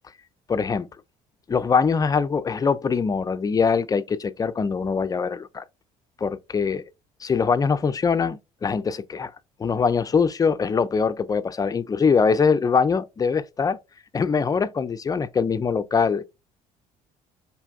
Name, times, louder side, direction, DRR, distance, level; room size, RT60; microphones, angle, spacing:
voice 1, 0.5-0.9 1.5-5.6 6.2-6.8 7.2-9.3 9.6-13.8 14.1-16.2, left 5 dB, 25° left, 0.3 m, -23 dB
3.3 x 2.7 x 2.3 m
supercardioid pair, 75°, 15 cm